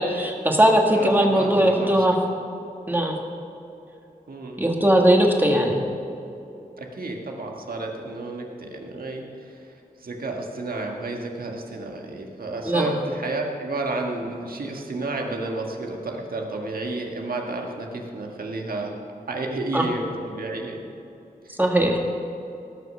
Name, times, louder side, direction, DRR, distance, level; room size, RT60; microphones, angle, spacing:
voice 1, 0.0-2.2 2.9-3.2 4.6-5.8 12.7-12.9 19.7-19.9 21.6-22.0, right 1 dB, 15° right, 1 dB, 1.7 m, -19 dB
voice 2, 0.9-2.2 4.3-4.6 6.8-9.7 10.0-18.9 19.3-20.8 21.4-21.5, right 2 dB, 85° right, 1 dB, 1.7 m, -31 dB
18.5 x 6.6 x 6.1 m, 2.8 s
wide cardioid pair, 85°, 15 cm